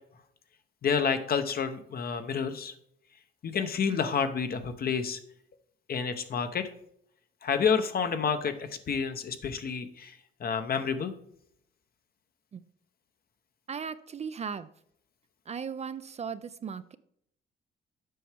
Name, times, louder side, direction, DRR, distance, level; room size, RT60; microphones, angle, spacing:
voice 1, 0.8-2.7 3.4-5.2 5.9-6.7 7.4-11.1, left 6 dB, 50° left, 9 dB, 0.8 m, -29 dB
voice 2, 13.7-14.7 15.5-17.0, right 6 dB, 35° right, 13 dB, 0.4 m, -37 dB
7.7 x 5.5 x 3.4 m, 0.72 s
cardioid pair, 90°, 20 cm